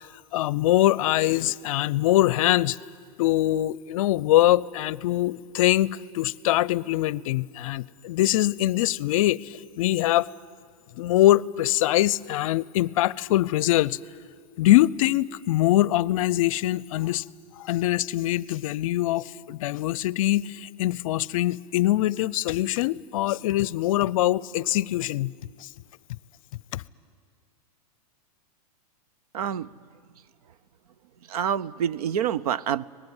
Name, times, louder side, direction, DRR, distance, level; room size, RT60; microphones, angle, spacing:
voice 1, 0.3-2.8 3.2-10.3 11.0-14.0 14.6-17.2 17.6-25.3 25.6-25.7 26.7-26.8, left 15 dB, 60° left, 0.6 m, -23 dB
voice 2, 29.3-29.7 31.3-32.9, right 9 dB, 75° right, 0.7 m, -27 dB
25.5 x 19.5 x 9.8 m
hypercardioid pair, 135°, 20 cm